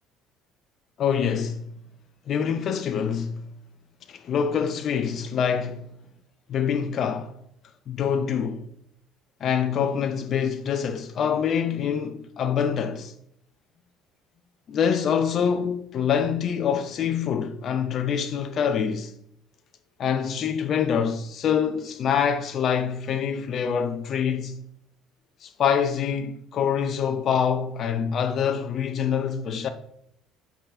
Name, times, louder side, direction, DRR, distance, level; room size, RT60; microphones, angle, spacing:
voice 1, 1.0-1.7 2.3-3.5 4.1-5.9 6.5-7.3 7.9-8.7 9.4-13.1 14.7-19.1 20.0-24.6 25.4-29.7, left 7 dB, 50° left, 0.6 m, -25 dB
8.3 x 5.6 x 2.6 m
hypercardioid pair, 70°, 0 cm